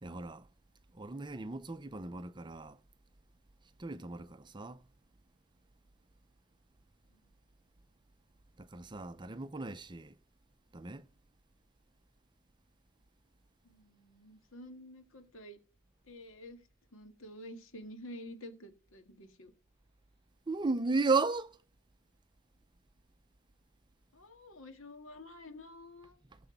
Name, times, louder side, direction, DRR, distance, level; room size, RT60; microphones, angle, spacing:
voice 1, 0.0-0.5 0.9-2.8 3.8-4.8 8.6-10.2 10.7-11.1 20.5-21.6 26.3-26.4, right 3 dB, 20° right, 0.6 m, -35 dB
voice 2, 13.6-15.6 16.1-16.6 16.9-19.5 24.1-26.2, left 1 dB, 70° left, 1.9 m, -49 dB
16.5 x 7.0 x 5.2 m
head